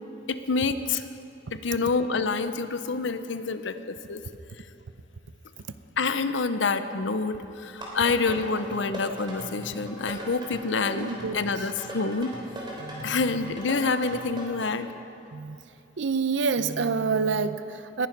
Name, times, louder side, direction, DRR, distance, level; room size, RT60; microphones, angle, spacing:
voice 1, 0.3-1.1 1.5-4.2 6.0-12.3 13.0-14.9, left 4 dB, 70° left, 11 dB, 0.7 m, -27 dB
sound 1, 7.8-14.7, equal, 25° right, 3.4 m, -39 dB
voice 2, 10.9-11.4 12.8-13.2 15.3-15.6 16.0-18.1, right 4 dB, 70° right, 12 dB, 0.6 m, -27 dB
20.5 x 10.5 x 5.3 m, 2.8 s
head